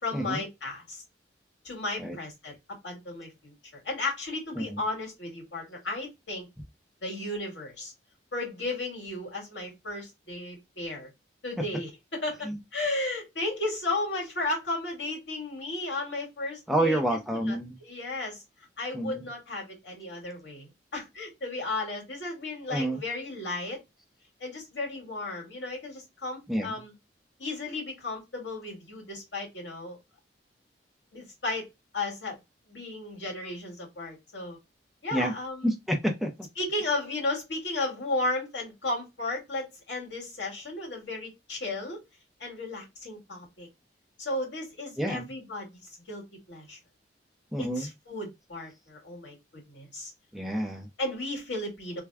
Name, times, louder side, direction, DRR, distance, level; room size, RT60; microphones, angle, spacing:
voice 1, 0.0-1.0 1.6-2.6 2.8-6.5 7.0-7.9 8.3-11.1 11.4-17.0 17.3-18.4 18.8-23.8 24.4-26.9 27.4-30.0 31.1-31.7 31.9-32.4 32.7-34.6 35.0-35.7 36.6-42.0 42.4-43.7 44.2-45.7 46.1-46.8 47.6-50.1 51.0-52.0, left 2 dB, 85° left, 2.1 m, -34 dB
voice 2, 16.7-17.8 18.9-19.2 22.7-23.0 26.5-26.8 35.1-35.3 35.6-36.3 45.0-45.3 47.5-47.9 50.3-50.9, right 1 dB, ahead, 0.6 m, -28 dB
3.4 x 2.2 x 3.4 m
head